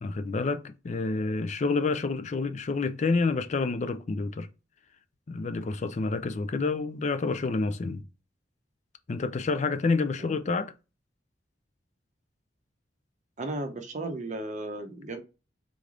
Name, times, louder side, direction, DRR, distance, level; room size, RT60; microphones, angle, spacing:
voice 1, 0.0-4.5 5.3-8.0 9.1-10.7, left 3 dB, 40° left, 0.4 m, -28 dB
voice 2, 13.4-15.2, right 2 dB, 40° right, 0.7 m, -35 dB
3.8 x 3.3 x 3.7 m
head